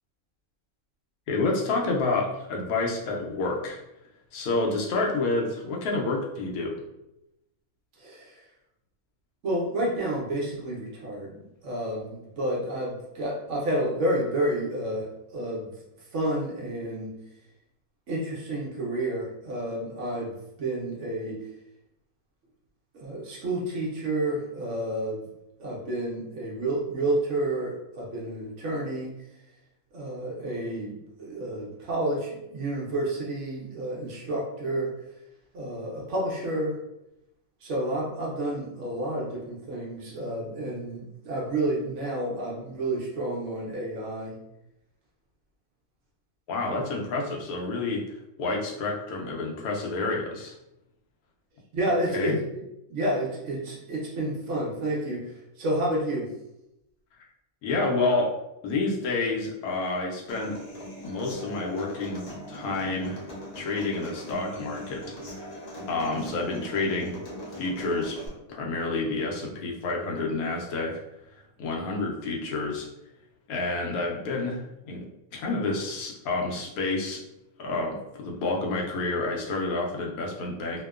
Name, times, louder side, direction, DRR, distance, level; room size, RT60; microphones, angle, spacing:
voice 1, 1.3-3.8 4.3-6.8 46.5-50.6 52.1-52.4 57.6-58.3 58.6-60.6 61.0-63.2 63.6-65.5 65.9-67.2 67.6-68.2 68.5-71.0 71.6-72.9 73.5-75.1 75.3-77.2 77.6-80.8, left 3 dB, 85° left, -1 dB, 1.1 m, -29 dB
voice 2, 8.0-8.4 9.4-15.7 16.1-17.2 18.1-21.5 22.9-25.2 25.6-29.1 29.9-34.9 35.5-36.8 37.6-44.4 51.7-52.6 52.9-56.3, right 1 dB, 65° right, -4 dB, 0.9 m, -30 dB
Human voice / Acoustic guitar, 60.3-68.3, equal, 65° left, 0.4 m, -40 dB
2.8 x 2.1 x 2.3 m, 0.87 s
omnidirectional pair, 1.5 m